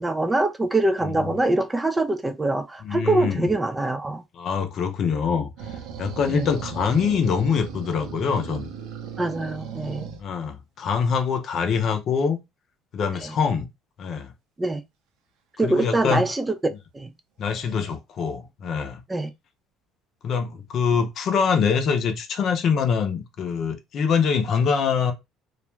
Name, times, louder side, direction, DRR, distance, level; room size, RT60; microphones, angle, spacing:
voice 1, 0.0-4.2 6.3-6.5 9.2-10.1 14.6-14.8 15.6-16.5 16.9-17.1 19.1-19.3, right 2 dB, 15° right, 0.3 m, -24 dB
voice 2, 2.8-3.5 4.3-5.5 6.0-8.7 10.2-12.4 12.9-13.7 14.0-14.3 15.6-16.2 17.4-19.0 20.2-25.1, left 6 dB, 50° left, 0.5 m, -24 dB
sound 1, 5.6-10.2 17.4-17.9, right 7 dB, 75° right, 0.7 m, -37 dB
2.4 x 2.1 x 3.1 m
cardioid pair, 115°, 0 cm